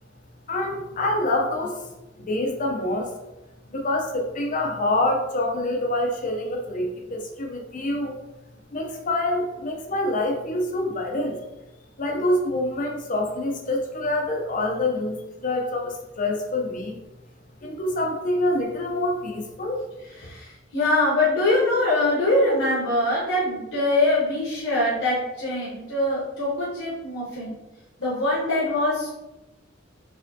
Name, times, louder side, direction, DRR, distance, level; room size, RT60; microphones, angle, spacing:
voice 1, 0.5-1.9 2.2-3.1 3.7-8.2 8.7-11.4 12.0-17.0 17.6-19.8, left 1 dB, 40° left, 2 dB, 0.5 m, -26 dB
voice 2, 20.1-27.5 28.0-29.1, left 2 dB, 65° left, -6 dB, 1.0 m, -23 dB
4.3 x 3.5 x 2.7 m, 1.0 s
head